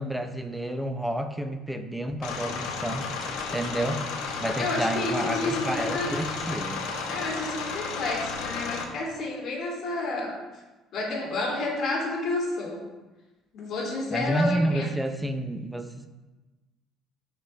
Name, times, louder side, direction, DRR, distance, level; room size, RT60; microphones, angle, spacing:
voice 1, 0.0-3.1 3.5-4.1 4.4-6.9 14.1-16.1, right 1 dB, 5° right, 7 dB, 0.7 m, -30 dB
sound 1, 2.2-8.8, left 5 dB, 85° left, 1.3 m, -33 dB
sound 2, 2.9-8.2, right 2 dB, 20° right, 2.9 m, -49 dB
voice 2, 4.6-6.2 7.1-10.4 10.9-12.8 13.5-14.9, left 2 dB, 55° left, -2 dB, 2.9 m, -30 dB
11.5 x 5.9 x 3.4 m, 1.1 s
cardioid pair, 135°, 0 cm